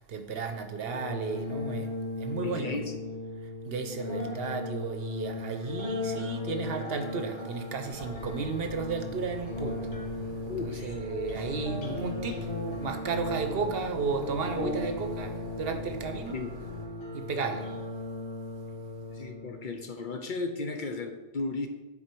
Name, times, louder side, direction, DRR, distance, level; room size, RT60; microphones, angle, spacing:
voice 1, 0.0-2.8 3.7-9.8 10.6-12.5 12.8-16.4 17.1-17.7 18.8-18.9, right 4 dB, 70° right, 7 dB, 1.0 m, -34 dB
sound 1, 0.9-19.9, left 2 dB, 80° left, 1.7 m, -36 dB
voice 2, 2.4-3.0 10.5-11.0 16.3-16.5 19.1-21.7, left 3 dB, 55° left, 5 dB, 0.8 m, -35 dB
sound 2, 7.9-16.9, right 2 dB, 50° right, 1.3 m, -45 dB
9.9 x 4.4 x 4.5 m, 1.2 s
omnidirectional pair, 1.1 m